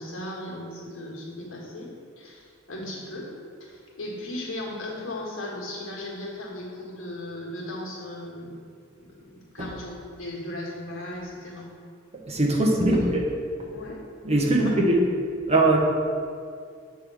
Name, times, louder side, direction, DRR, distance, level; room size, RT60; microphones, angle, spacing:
voice 1, 0.0-3.3 3.6-8.6 8.9-11.7 12.9-13.0 13.7-14.0 14.4-14.8, left 1 dB, 80° left, -3 dB, 1.6 m, -36 dB
voice 2, 12.2-13.0 14.2-15.0 15.5-15.8, right 2 dB, 30° right, -1 dB, 1.0 m, -21 dB
7.9 x 3.4 x 6.2 m, 2.2 s
head